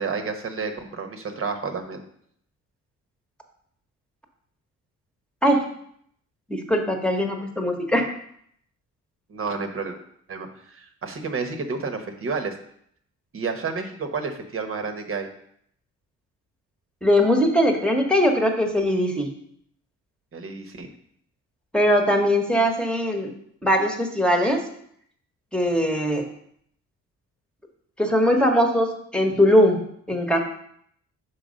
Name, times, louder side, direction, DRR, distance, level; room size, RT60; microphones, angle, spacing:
voice 1, 0.0-2.0 9.3-10.0 10.3-12.5 13.3-15.3 20.3-20.9, right 4 dB, 45° right, 5 dB, 1.2 m, -30 dB
voice 2, 6.5-8.0 17.0-19.3 21.7-23.3 23.6-24.6 25.5-26.3 28.0-30.4, equal, 5° left, 3 dB, 1.3 m, -21 dB
6.1 x 4.7 x 5.2 m, 0.67 s
cardioid pair, 90°, 30 cm